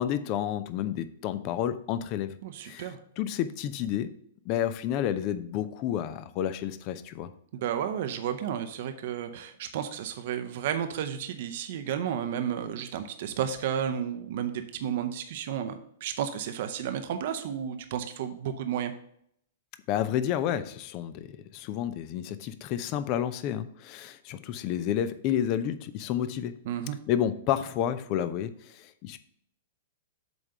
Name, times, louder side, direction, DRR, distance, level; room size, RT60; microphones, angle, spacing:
voice 1, 0.0-2.3 2.6-4.1 4.4-7.3 19.9-26.5 27.1-29.2, left 10 dB, 40° left, 13 dB, 0.7 m, -30 dB
voice 2, 2.4-3.0 7.5-18.9 26.7-27.0, right 9 dB, 55° right, 8 dB, 0.8 m, -32 dB
7.9 x 3.7 x 6.6 m, 0.69 s
hypercardioid pair, 110°, 0 cm